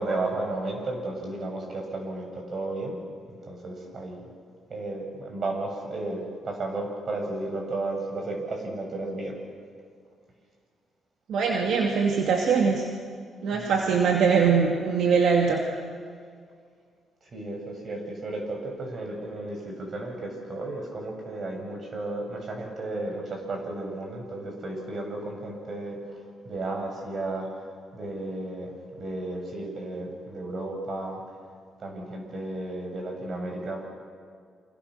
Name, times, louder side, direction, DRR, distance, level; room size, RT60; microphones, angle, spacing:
voice 1, 0.0-3.0 3.3-4.3 4.7-9.4 13.5-13.9 17.2-27.6 27.9-31.2 31.8-33.9, right 2 dB, 45° right, 2 dB, 7.8 m, -33 dB
voice 2, 11.3-12.9 13.4-15.6, right 5 dB, 70° right, 1 dB, 2.5 m, -22 dB
29.0 x 27.0 x 6.6 m, 2.1 s
cardioid pair, 90°, 0 cm